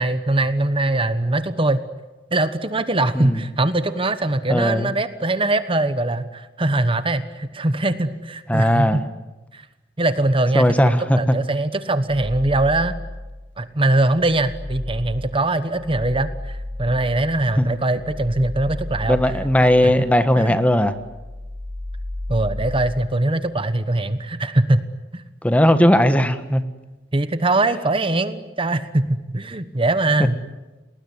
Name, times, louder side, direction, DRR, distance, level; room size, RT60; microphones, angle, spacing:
voice 1, 0.0-1.9 2.3-9.0 9.5-9.6 10.0-12.9 13.6-19.3 19.6-20.0 20.4-20.6 22.3-24.8 25.1-25.2 27.1-30.4, right 2 dB, 30° right, 11 dB, 1.2 m, -22 dB
voice 2, 4.5-4.9 8.5-9.0 10.5-11.4 17.6-17.7 19.1-20.9 25.4-26.6, equal, 10° left, 10 dB, 1.5 m, -17 dB
sound 1, 12.1-13.5 13.9-20.5 20.8-23.1, left 1 dB, 65° left, 7.5 m, -33 dB
29.0 x 20.0 x 9.6 m, 1.1 s
head